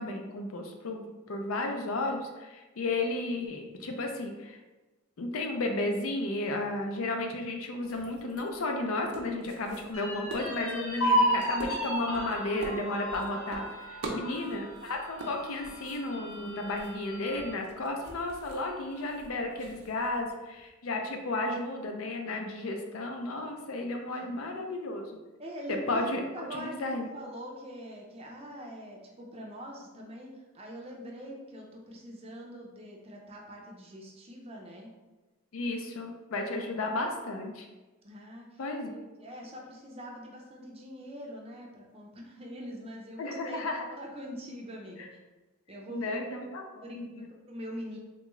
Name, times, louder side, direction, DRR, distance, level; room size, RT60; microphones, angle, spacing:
voice 1, 0.0-4.6 5.2-25.1 25.7-27.1 35.5-37.7 38.6-38.9 43.2-43.8 45.9-47.3, left 2 dB, 70° left, 3 dB, 0.5 m, -33 dB
sound 1, 7.8-20.3, right 2 dB, 80° right, 0.6 m, -45 dB
sound 2, 9.9-17.6 18.0-18.1 18.5-19.2, equal, 85° left, 1.1 m, -33 dB
voice 2, 14.2-14.6 24.1-24.6 25.4-34.9 38.0-45.2 45.7-46.1 46.8-48.0, equal, 30° right, 0 dB, 0.5 m, -44 dB
3.5 x 2.3 x 3.0 m, 1.2 s
head